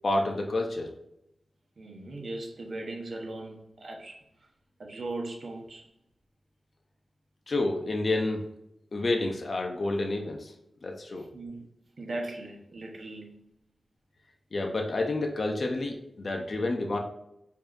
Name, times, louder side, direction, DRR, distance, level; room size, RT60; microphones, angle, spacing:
voice 1, 0.0-0.9 7.5-8.5 8.9-10.5 10.8-11.3 14.5-17.0, left 2 dB, 50° left, 0.6 m, -29 dB
voice 2, 1.8-4.2 4.8-5.9 11.3-11.7 12.0-13.4, right 2 dB, 60° right, 0.9 m, -38 dB
4.9 x 2.7 x 2.5 m
wide cardioid pair, 100°, 0 cm